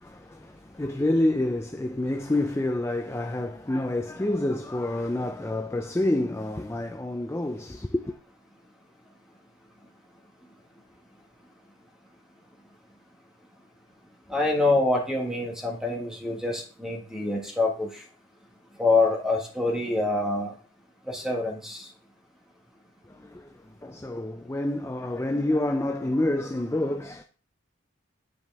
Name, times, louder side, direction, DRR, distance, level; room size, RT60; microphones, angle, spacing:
voice 1, 0.0-8.2 23.1-27.2, left 1 dB, 15° left, 0.4 m, -28 dB
voice 2, 14.3-18.0 18.8-20.5 21.1-21.9, left 2 dB, 5° right, 1.6 m, -26 dB
9.9 x 5.1 x 3.5 m
head